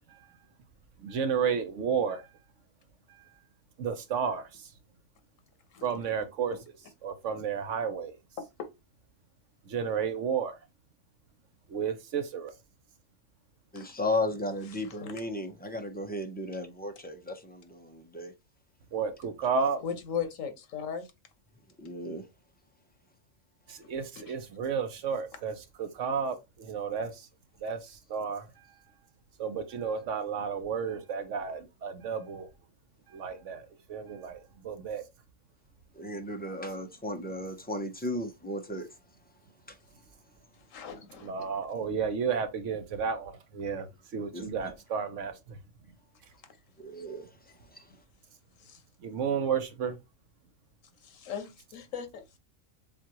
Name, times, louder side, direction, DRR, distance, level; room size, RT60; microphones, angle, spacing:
voice 1, 1.0-2.4 3.1-3.4 3.8-4.7 5.8-6.6 7.0-8.2 9.7-10.6 11.7-12.5 18.9-19.8 23.7-27.3 27.6-28.8 29.4-32.5 33.1-35.0 41.2-45.6 49.0-50.0, right 6 dB, 70° right, 1.1 m, -32 dB
voice 2, 8.4-8.7 13.8-13.9 14.8-15.2 19.8-21.1 24.3-24.4 40.7-41.5 48.6-48.8 51.0-52.4, left 7 dB, 85° left, 1.3 m, -38 dB
voice 3, 13.7-18.3 21.8-22.2 36.0-38.9 44.3-44.7 46.8-47.3 47.7-47.8, left 1 dB, 15° left, 0.4 m, -35 dB
7.3 x 2.5 x 2.9 m
omnidirectional pair, 1.3 m